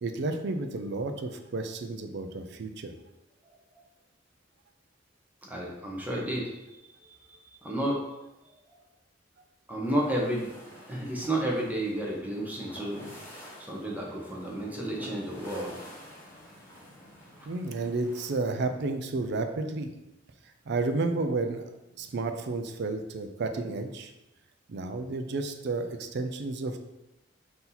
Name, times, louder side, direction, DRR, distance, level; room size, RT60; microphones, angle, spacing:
voice 1, 0.0-2.9 17.5-19.9 20.7-21.7 22.0-24.1 24.7-26.8, right 3 dB, 60° right, 7 dB, 0.4 m, -31 dB
voice 2, 5.4-8.1 9.7-10.5 10.9-13.1 13.6-15.8 17.4-17.5, right 1 dB, 10° right, -3 dB, 0.8 m, -32 dB
sound 1, 9.8-18.3, left 1 dB, 10° left, 1.1 m, -49 dB
4.2 x 2.8 x 3.9 m, 0.94 s
head